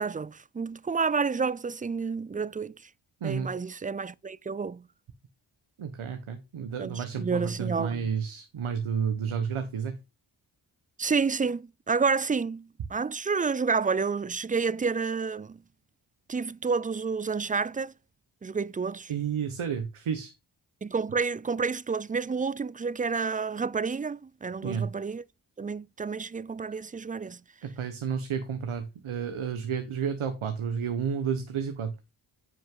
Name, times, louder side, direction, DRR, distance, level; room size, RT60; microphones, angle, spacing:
voice 1, 0.0-2.7 3.2-4.8 6.8-8.1 11.0-15.6 16.3-17.9 18.4-19.1 20.8-25.2 25.6-27.4, right 5 dB, 20° right, 0.3 m, -29 dB
voice 2, 5.8-10.0 19.1-20.3 24.6-24.9 27.6-31.9, right 7 dB, 80° right, 1.3 m, -31 dB
9.9 x 5.4 x 3.8 m
cardioid pair, 45°, 48 cm